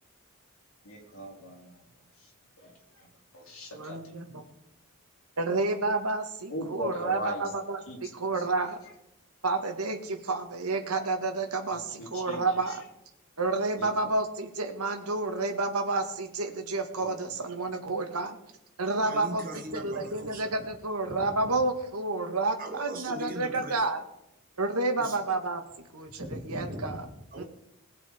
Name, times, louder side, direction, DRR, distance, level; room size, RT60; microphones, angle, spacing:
voice 1, 0.8-1.8 2.2-2.3 2.6-3.1 3.3-4.0 6.5-7.5 7.9-8.0 8.3-8.9 11.7-12.8 13.7-14.1 17.0-17.1 17.4-17.5, left 1 dB, 65° left, -2 dB, 4.7 m, -40 dB
voice 2, 3.7-4.4 5.4-8.8 9.4-12.8 13.4-18.4 18.8-19.4 19.7-24.0 24.6-25.6 25.9-27.0 27.4-27.5, right 3 dB, 90° right, 5 dB, 2.0 m, -30 dB
voice 3, 19.0-20.7 21.0-21.5 22.6-23.9 25.0-25.3 26.1-27.4, right 1 dB, 40° right, 0 dB, 2.6 m, -40 dB
20.0 x 7.8 x 5.1 m, 0.81 s
head